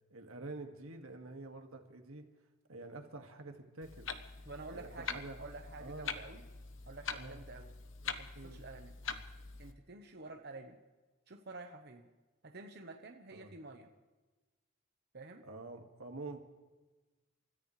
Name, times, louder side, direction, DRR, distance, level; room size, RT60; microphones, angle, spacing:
voice 1, 0.1-2.2 2.7-4.1 4.7-5.4 5.8-6.2 7.1-7.4 8.4-8.6 13.3-13.5 15.4-16.4, right 2 dB, 85° right, 5 dB, 2.0 m, -47 dB
Clock, 3.8-9.7, left 5 dB, 65° left, 1.1 m, -44 dB
voice 2, 4.5-6.4 6.9-7.7 8.0-8.9 9.6-10.8 11.3-12.1 12.4-13.9 15.1-15.4, right 3 dB, 50° right, 3 dB, 1.0 m, -50 dB
30.0 x 14.0 x 3.3 m, 1.2 s
head